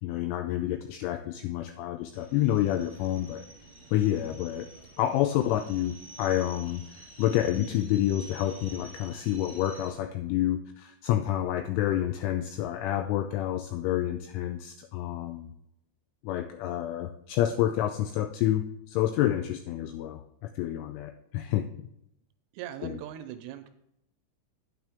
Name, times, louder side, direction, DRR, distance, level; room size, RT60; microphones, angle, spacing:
voice 1, 0.0-3.4 3.9-4.7 5.0-15.5 16.2-20.2 20.6-21.9 22.8-23.0, left 12 dB, 85° left, 7 dB, 2.7 m, -28 dB
sound 1, 2.1-9.9, right 2 dB, 25° left, 1.4 m, -49 dB
voice 2, 22.5-23.7, right 11 dB, 85° right, 8 dB, 2.9 m, -40 dB
9.5 x 8.9 x 3.5 m, 0.79 s
omnidirectional pair, 6.0 m